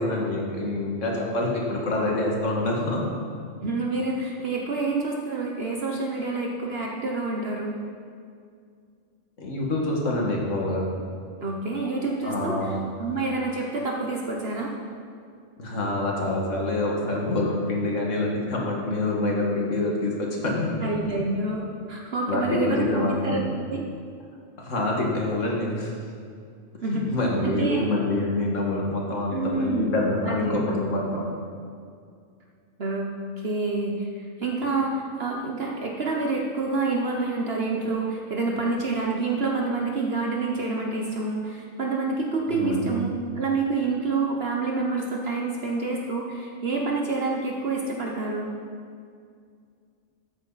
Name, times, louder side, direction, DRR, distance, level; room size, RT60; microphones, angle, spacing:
voice 1, 0.0-3.1 9.4-10.9 12.2-12.8 15.6-20.9 22.3-23.4 24.6-25.9 26.9-31.3 42.5-42.9, left 2 dB, 70° left, -2 dB, 2.1 m, -26 dB
voice 2, 3.6-7.8 11.4-12.7 13.0-14.7 20.8-23.4 23.7-23.8 26.8-27.1 27.4-27.8 29.3-29.9 30.3-30.6 32.8-33.1 33.4-43.1 43.4-48.5, right 3 dB, 50° right, -1 dB, 1.1 m, -27 dB
14.0 x 8.3 x 4.1 m, 2.3 s
omnidirectional pair, 1.4 m